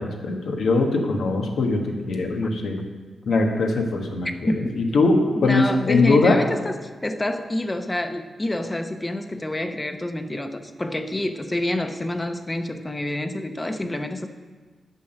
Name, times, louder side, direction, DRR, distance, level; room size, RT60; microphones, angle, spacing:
voice 1, 0.0-1.8 2.1-2.8 3.3-6.4, left 3 dB, 80° left, 2 dB, 1.3 m, -21 dB
voice 2, 5.4-6.7 7.0-14.3, left 1 dB, 20° left, 7 dB, 0.8 m, -27 dB
8.2 x 6.0 x 6.7 m, 1.4 s
cardioid pair, 75°, 0 cm